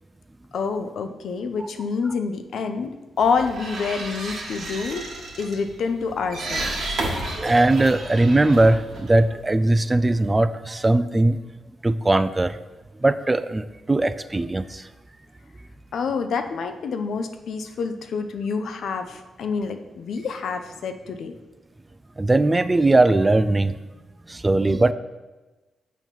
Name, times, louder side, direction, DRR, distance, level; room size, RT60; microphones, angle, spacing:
voice 1, 0.5-5.0 5.4-6.7 15.9-21.3, left 5 dB, 75° left, 7 dB, 0.5 m, -27 dB
sound 1, 3.2-9.7, right 2 dB, 70° right, 1.4 m, -33 dB
voice 2, 7.4-11.4 11.8-12.6 13.0-14.8 22.2-23.7 24.3-24.9, right 2 dB, 25° right, 13 dB, 0.3 m, -19 dB
7.0 x 2.9 x 5.7 m, 1.2 s
cardioid pair, 60°, 0 cm